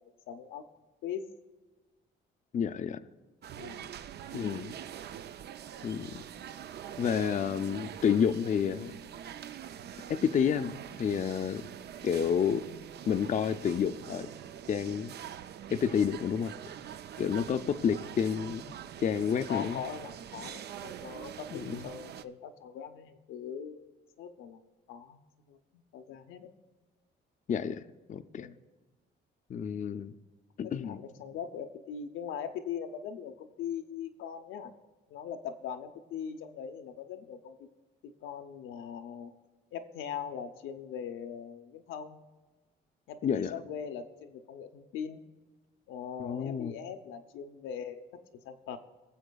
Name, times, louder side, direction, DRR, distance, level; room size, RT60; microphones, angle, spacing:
voice 1, 0.3-0.6 1.0-1.3 3.5-4.0 19.5-23.8 24.2-24.6 24.9-26.5 28.3-28.6 30.6-34.7 35.1-37.7 38.0-39.3 39.7-42.2 43.1-45.2 45.9-48.8, left 8 dB, 85° left, 6 dB, 0.7 m, -41 dB
voice 2, 2.5-3.0 4.3-4.7 5.8-6.2 7.0-9.0 10.1-11.7 12.0-12.6 13.1-14.3 14.7-15.1 15.7-16.5 17.2-18.7 19.0-19.8 21.5-21.9 27.5-27.8 28.1-28.5 29.5-30.1 30.6-31.0 43.2-43.5 46.2-46.7, left 7 dB, 40° left, 10 dB, 0.4 m, -30 dB
sound 1, 3.4-22.2, right 9 dB, 55° right, 0.4 m, -44 dB
21.0 x 7.1 x 2.3 m, 1.3 s
cardioid pair, 90°, 20 cm